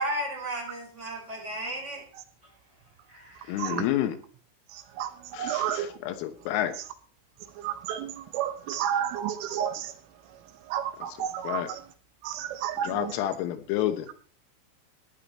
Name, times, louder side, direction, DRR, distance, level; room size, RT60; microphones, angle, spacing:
voice 1, 0.0-2.0 3.1-3.7, right 1 dB, 15° right, -2 dB, 4.0 m, -34 dB
voice 2, 3.5-4.2 5.3-6.7 11.5-11.7 12.8-14.1, left 12 dB, 80° left, 8 dB, 3.7 m, -29 dB
voice 3, 5.4-5.9 7.6-9.7 10.7-11.6 12.3-13.1, right 10 dB, 80° right, 8 dB, 3.3 m, -30 dB
14.5 x 10.5 x 4.3 m, 0.43 s
omnidirectional pair, 5.9 m